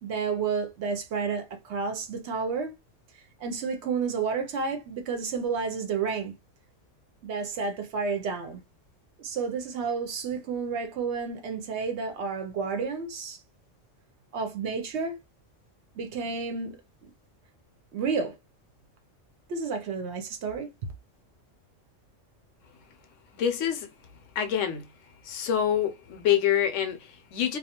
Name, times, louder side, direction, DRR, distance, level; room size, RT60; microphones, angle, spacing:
voice 1, 0.0-2.7 3.1-6.3 7.2-8.6 9.2-13.4 14.3-15.2 16.0-16.8 17.9-18.3 19.5-20.7, right 5 dB, 65° right, 0.8 m, -31 dB
voice 2, 23.3-23.9 24.4-24.9 25.2-27.6, left 9 dB, 75° left, 0.9 m, -26 dB
2.3 x 2.3 x 2.8 m
omnidirectional pair, 1.3 m